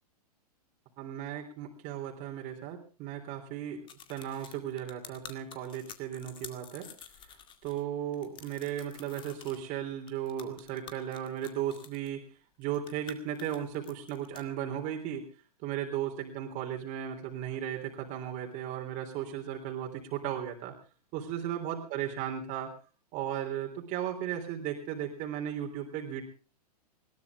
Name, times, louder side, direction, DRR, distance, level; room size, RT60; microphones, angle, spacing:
voice 1, 1.0-3.8 4.1-6.9 7.6-12.2 12.6-15.2 15.6-20.8 21.1-22.7 23.1-26.2, right 10 dB, 40° right, 1 dB, 3.5 m, -36 dB
sound 1, 3.9-7.8 8.1-9.6 10.1-12.1 12.6-14.4, left 8 dB, 25° left, 2.0 m, -49 dB
20.5 x 17.5 x 3.6 m, 0.36 s
hypercardioid pair, 115°, 21 cm